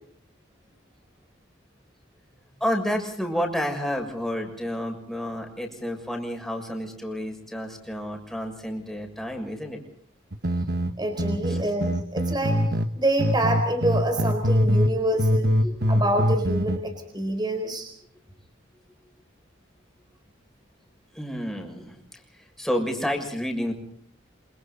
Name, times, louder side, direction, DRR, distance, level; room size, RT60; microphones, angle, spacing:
voice 1, 2.6-9.8 11.5-11.6 15.6-15.8 21.1-23.7, equal, ahead, 2 dB, 6.7 m, -30 dB
sound 1, 10.3-12.9 13.2-14.9 15.2-16.8, equal, 55° right, 1.5 m, -23 dB
voice 2, 11.0-12.6 13.0-15.6 15.9-17.9, right 1 dB, 20° right, 5 dB, 4.4 m, -26 dB
28.5 x 28.0 x 4.2 m, 0.64 s
head